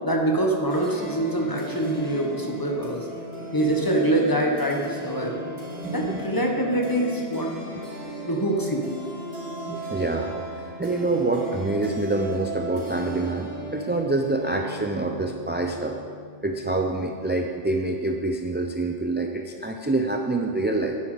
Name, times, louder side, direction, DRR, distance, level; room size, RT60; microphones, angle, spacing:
voice 1, 0.0-3.1 3.5-5.3 5.9-7.5 8.3-8.9, right 1 dB, 20° left, 0 dB, 1.3 m, -24 dB
sound 1, 0.7-17.3, right 1 dB, 70° right, 4.0 m, -36 dB
voice 2, 5.8-6.2 9.7-16.0 16.4-21.0, right 2 dB, 15° right, 3 dB, 0.4 m, -26 dB
10.5 x 9.8 x 5.0 m, 2.2 s
omnidirectional pair, 1.1 m